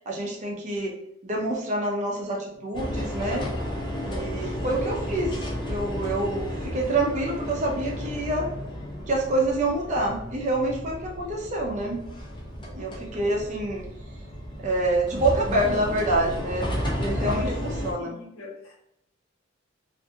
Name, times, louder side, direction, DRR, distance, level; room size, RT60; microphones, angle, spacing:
voice 1, 0.1-0.9 1.2-3.5 4.0-8.5 9.1-12.1 12.7-13.9 14.6-18.1, right 2 dB, 35° right, -1 dB, 0.5 m, -27 dB
sound 1, 2.7-17.9, equal, 25° left, 0.5 m, -33 dB
voice 2, 17.2-17.7 18.0-18.7, equal, 85° left, -5 dB, 1.1 m, -40 dB
2.7 x 2.5 x 2.4 m, 0.79 s
head